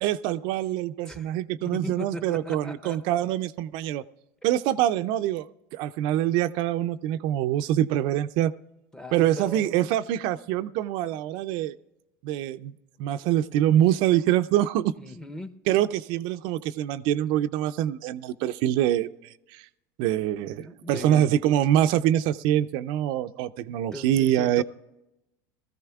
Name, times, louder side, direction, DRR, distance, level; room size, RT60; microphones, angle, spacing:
voice 1, 0.0-4.0 4.4-5.5 5.7-8.5 9.1-11.7 12.2-12.7 13.0-14.9 15.7-19.7 20.0-24.6, right 12 dB, 60° right, 0.4 m, -25 dB
voice 2, 1.6-3.0 8.9-9.9 15.0-15.6 20.6-21.3 23.9-24.6, left 1 dB, 5° left, 0.7 m, -39 dB
19.5 x 14.0 x 2.3 m
supercardioid pair, 100°, 9 cm